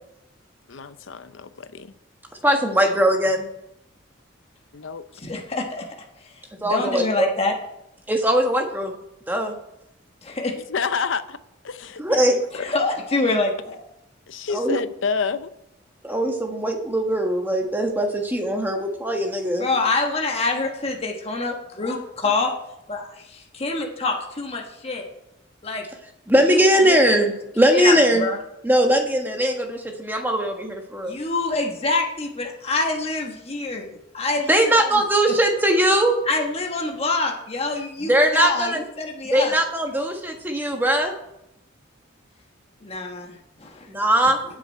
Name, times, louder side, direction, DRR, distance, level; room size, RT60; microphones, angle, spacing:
voice 1, 0.7-1.9 4.7-5.0 10.6-11.4 11.6-12.0 12.6-12.7 13.1-13.2 14.3-15.5, left 5 dB, 70° left, 0.7 m, -28 dB
voice 2, 2.4-3.5 6.6-7.3 8.1-8.9 9.3-9.5 12.0-12.4 14.5-14.8 16.0-19.7 26.3-28.3 28.6-31.1 34.5-36.2 38.0-38.8 39.2-41.1 43.9-44.4, right 1 dB, 10° right, 1.4 m, -20 dB
voice 3, 5.2-5.9 6.2-6.3 6.6-7.5 10.2-10.5 12.1-12.2 12.5-13.8 19.6-22.0 22.2-22.5 22.9-25.1 25.6-25.8 26.5-26.6 26.9-27.2 27.7-28.4 31.0-34.9 35.3-35.4 36.3-39.6 42.8-43.9, left 3 dB, 30° left, 1.2 m, -26 dB
17.5 x 6.3 x 4.4 m
head